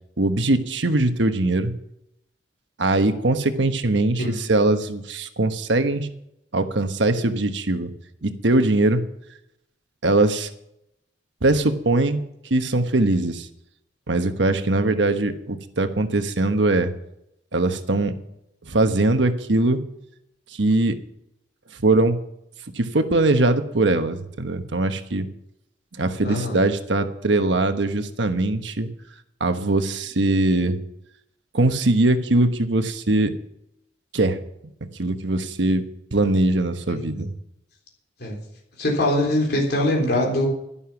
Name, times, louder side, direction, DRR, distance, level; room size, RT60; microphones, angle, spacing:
voice 1, 0.2-1.7 2.8-6.1 6.5-7.9 8.2-9.0 10.0-10.5 11.4-13.5 14.1-16.9 17.5-18.1 18.6-19.8 20.5-21.0 21.8-22.2 22.7-25.3 26.0-28.9 29.4-30.8 31.5-33.3 34.1-34.4 35.0-35.8 36.1-37.3, right 2 dB, 75° right, 8 dB, 1.2 m, -21 dB
voice 2, 26.2-26.6 36.9-37.2 38.2-38.4 38.8-40.5, left 1 dB, 60° left, -1 dB, 3.7 m, -23 dB
11.5 x 11.0 x 5.9 m, 0.78 s
head